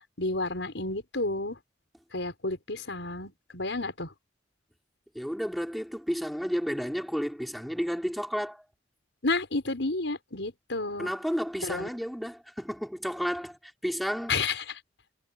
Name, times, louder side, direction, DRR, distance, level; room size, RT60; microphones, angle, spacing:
voice 1, 0.2-1.6 2.1-4.1 9.2-11.1 11.6-11.9 14.3-14.6, left 3 dB, 90° left, 5.5 m, -31 dB
voice 2, 5.1-8.6 11.0-14.4, equal, ahead, 3.5 m, -32 dB
head